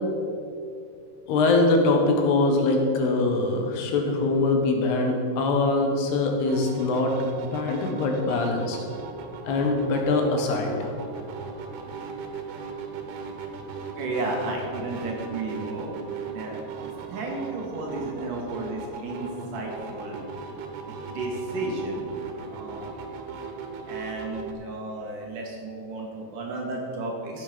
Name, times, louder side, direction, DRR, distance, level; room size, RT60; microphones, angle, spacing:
voice 1, 1.3-7.2 7.4-8.8 9.5-10.9, left 3 dB, 85° left, 2 dB, 3.4 m, -23 dB
sound 1, 6.5-24.5, right 5 dB, 85° right, 3.2 m, -38 dB
voice 2, 14.0-16.1 16.3-16.5 16.8-20.2 21.1-22.9 23.9-27.4, right 2 dB, 60° right, -1 dB, 2.9 m, -33 dB
14.5 x 7.9 x 5.2 m, 2.3 s
omnidirectional pair, 4.6 m